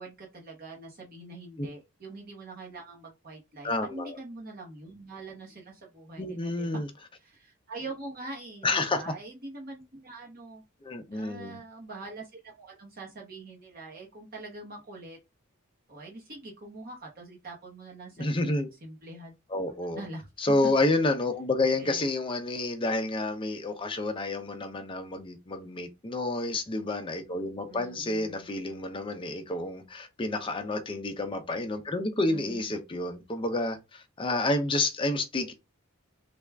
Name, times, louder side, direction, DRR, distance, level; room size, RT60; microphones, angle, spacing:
voice 1, 0.0-6.8 7.2-10.6 11.1-15.2 15.9-19.3 19.9-20.3 21.7-22.1 27.7-28.5 32.3-32.7, right 2 dB, 45° right, 0.9 m, -44 dB
voice 2, 3.6-4.1 6.2-6.9 8.6-9.0 10.8-11.6 18.2-18.7 19.5-20.0 20.4-35.5, left 2 dB, 25° left, 0.5 m, -29 dB
3.3 x 2.3 x 3.4 m
head